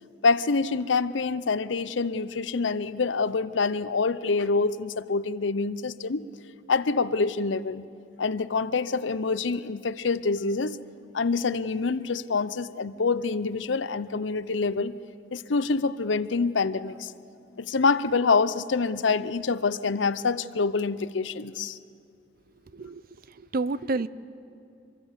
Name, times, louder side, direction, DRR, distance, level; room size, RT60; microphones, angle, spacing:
voice 1, 0.2-6.3 6.7-7.8 8.2-10.8 11.1-14.9 15.3-17.1 17.6-21.8, left 4 dB, 85° left, 15 dB, 0.7 m, -26 dB
voice 2, 22.7-24.1, right 3 dB, 50° right, 17 dB, 0.6 m, -30 dB
25.5 x 23.0 x 7.3 m, 2.5 s
head